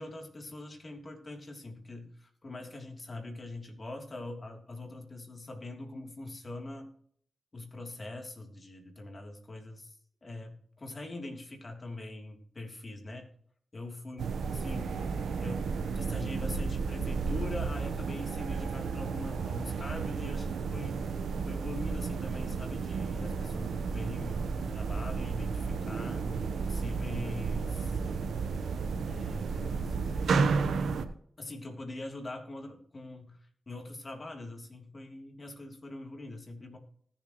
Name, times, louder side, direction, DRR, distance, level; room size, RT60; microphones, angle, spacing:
voice 1, 0.0-6.9 7.5-9.9 10.2-13.3 13.7-15.1 15.4-21.0 21.4-26.3 26.7-28.0 29.1-30.3 31.4-33.4 33.7-36.8, left 2 dB, 40° left, 2 dB, 3.1 m, -43 dB
sound 1, 14.2-31.1, right 5 dB, 75° right, 1.0 m, -32 dB
20.0 x 7.1 x 3.1 m, 0.62 s
supercardioid pair, 40°, 0 cm